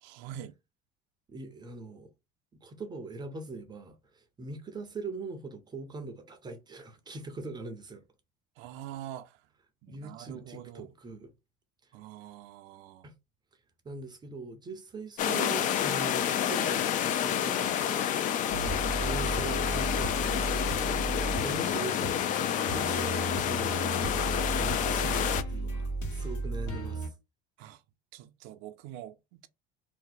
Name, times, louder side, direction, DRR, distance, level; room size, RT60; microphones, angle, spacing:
voice 1, 0.0-0.5 8.6-9.4 9.8-10.9 11.9-13.1 20.8-21.1 27.6-27.8 28.1-29.5, right 11 dB, 70° right, 0.5 m, -45 dB
voice 2, 1.3-2.1 2.5-8.0 9.9-11.3 13.0-13.1 13.8-27.1, right 3 dB, 20° right, 0.5 m, -42 dB
sound 1, 15.2-25.4, left 10 dB, 40° left, 0.4 m, -29 dB
sound 2, 18.5-27.1, right 3 dB, 80° left, 1.3 m, -34 dB
2.6 x 2.1 x 3.9 m
cardioid pair, 135°, 20 cm